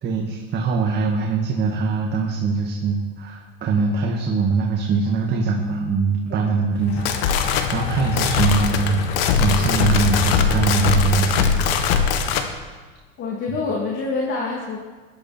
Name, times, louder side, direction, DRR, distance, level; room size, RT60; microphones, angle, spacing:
voice 1, 0.0-7.1 7.7-11.5, right 4 dB, 35° right, 0 dB, 1.9 m, -22 dB
sound 1, 6.8-12.5, left 7 dB, 70° left, 1.7 m, -21 dB
voice 2, 13.2-14.8, left 3 dB, 40° left, -2 dB, 3.1 m, -26 dB
19.0 x 11.5 x 4.5 m, 1.4 s
supercardioid pair, 120°, 30 cm